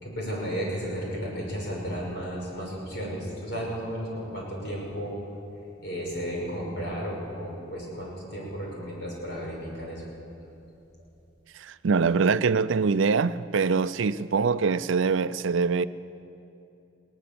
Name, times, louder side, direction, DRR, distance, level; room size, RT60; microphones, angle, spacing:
voice 1, 0.0-5.2 5.8-10.0, equal, 60° left, 5.9 m, -33 dB
voice 2, 11.5-15.9, right 5 dB, 80° right, 0.5 m, -24 dB
21.0 x 18.0 x 7.0 m
head